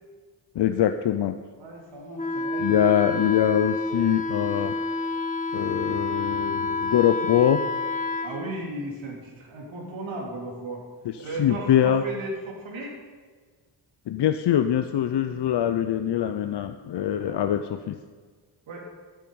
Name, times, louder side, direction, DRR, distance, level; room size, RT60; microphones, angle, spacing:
voice 1, 0.5-1.4 2.6-4.8 5.5-7.6 11.4-12.0 14.1-18.0, left 10 dB, 60° left, 9 dB, 0.7 m, -23 dB
voice 2, 1.6-2.7 8.2-10.8 11.2-13.0 17.1-17.6 18.7-18.9, right 2 dB, 80° right, -2 dB, 3.5 m, -36 dB
Wind instrument woodwind instrument, 2.2-8.3, left 3 dB, 15° left, 1.4 m, -29 dB
10.5 x 9.1 x 9.4 m, 1.5 s
cardioid pair, 110°, 46 cm